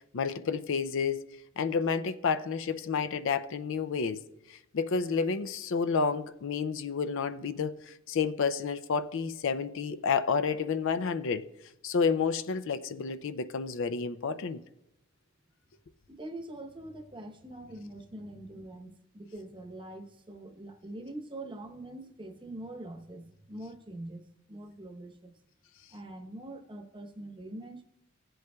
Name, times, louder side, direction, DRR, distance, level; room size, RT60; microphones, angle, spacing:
voice 1, 0.1-1.2 1.6-4.2 4.7-11.4 11.8-14.6, left 5 dB, 65° left, 0.5 m, -30 dB
voice 2, 16.1-25.3 25.9-27.8, right 1 dB, 25° right, 0.9 m, -44 dB
16.0 x 7.9 x 2.3 m
head